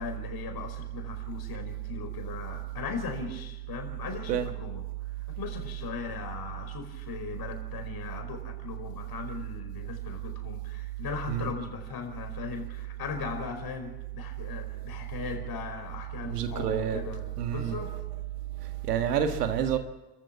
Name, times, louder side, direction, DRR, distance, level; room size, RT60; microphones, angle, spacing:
voice 1, 0.0-17.2 17.5-18.0, left 6 dB, 50° left, 5.2 m, -39 dB
voice 2, 16.2-17.1 17.4-17.9 18.6-19.8, right 9 dB, 85° right, 1.7 m, -28 dB
30.0 x 14.5 x 7.6 m
figure-of-eight pair, 50°, 46 cm